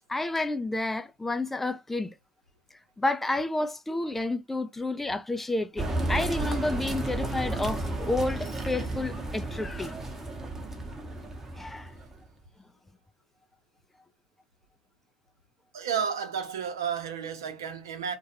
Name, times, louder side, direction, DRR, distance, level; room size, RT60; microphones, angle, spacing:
voice 1, 0.0-2.1 3.0-10.0 11.6-11.9, left 2 dB, 10° left, 0.3 m, -30 dB
sound 1, 5.8-12.2, right 2 dB, 20° right, 0.9 m, -33 dB
voice 2, 15.7-18.1, right 7 dB, 80° right, 0.7 m, -32 dB
2.4 x 2.2 x 2.8 m
hypercardioid pair, 80°, 2 cm